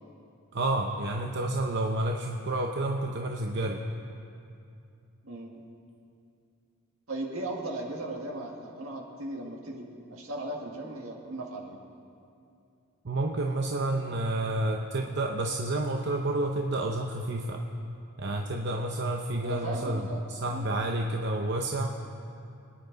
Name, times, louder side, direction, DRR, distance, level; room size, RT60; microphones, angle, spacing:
voice 1, 0.5-3.8 13.0-17.6 18.2-20.0 20.3-21.9, right 2 dB, 55° right, 2 dB, 0.7 m, -30 dB
voice 2, 7.1-11.8 19.4-20.2 20.5-20.7, right 2 dB, 75° right, 0 dB, 1.9 m, -37 dB
25.0 x 10.0 x 4.0 m, 2.6 s
head